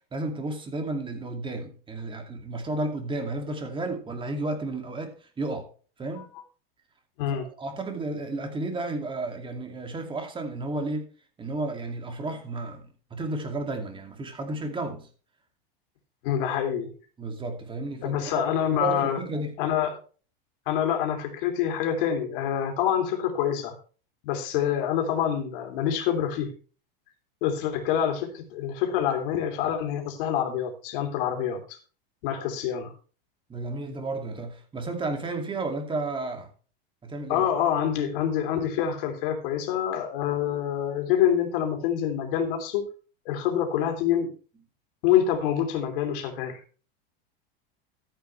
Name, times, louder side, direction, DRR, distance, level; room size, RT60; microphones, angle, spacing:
voice 1, 0.1-5.7 6.0-6.3 7.3-11.1 11.4-15.1 17.2-18.5 18.8-19.5 33.5-36.5 37.0-37.5, right 2 dB, 15° right, 2.4 m, -32 dB
voice 2, 16.2-16.9 18.0-19.2 19.6-20.0 20.7-23.7 24.2-26.5 27.4-31.8 32.2-32.9 37.3-42.8 43.2-44.3 45.0-46.6, left 9 dB, 65° left, 3.2 m, -26 dB
13.5 x 8.8 x 3.3 m
supercardioid pair, 130°, 30 cm